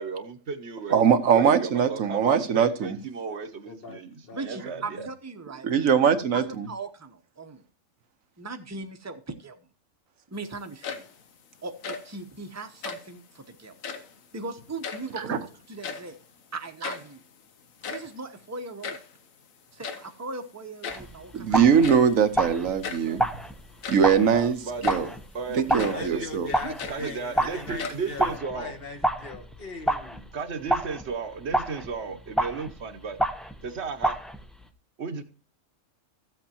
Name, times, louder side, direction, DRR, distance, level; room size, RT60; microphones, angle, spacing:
voice 1, 0.0-1.0 1.3-5.1 23.0-23.2 24.3-24.9 25.3-25.6 25.9-26.3 26.9-28.7 30.3-33.2 33.6-34.2 35.0-35.2, right 5 dB, 60° right, 1.1 m, -34 dB
voice 2, 0.9-3.0 5.6-6.7 15.3-15.4 21.3-23.2 23.9-24.6 24.8-25.1 25.7-26.5, right 7 dB, 85° right, 1.4 m, -21 dB
voice 3, 3.6-5.1 25.9-30.3, left 4 dB, 45° left, 1.4 m, -40 dB
voice 4, 4.3-5.7 6.3-7.6 8.4-9.6 10.3-11.1 11.6-13.8 14.3-16.2 16.5-17.2 17.9-19.0 19.7-21.6 25.5-25.9 26.6-27.1, right 3 dB, 15° right, 0.8 m, -38 dB
sound 1, 10.6-11.3 11.7-12.2 12.7-13.2 13.7-14.2 14.6-15.4 15.6-16.3 16.5-16.6 16.8-17.2 17.6-19.2 19.8-20.2 20.8-21.2 21.8-22.2 22.8-23.1 23.6-24.2 24.8-25.2 25.8-26.1 26.5-27.4 27.8-28.4, left 5 dB, 90° left, 1.4 m, -37 dB
sound 2, 20.9-34.7, right 1 dB, ahead, 0.4 m, -30 dB
14.5 x 7.9 x 2.9 m
omnidirectional pair, 1.4 m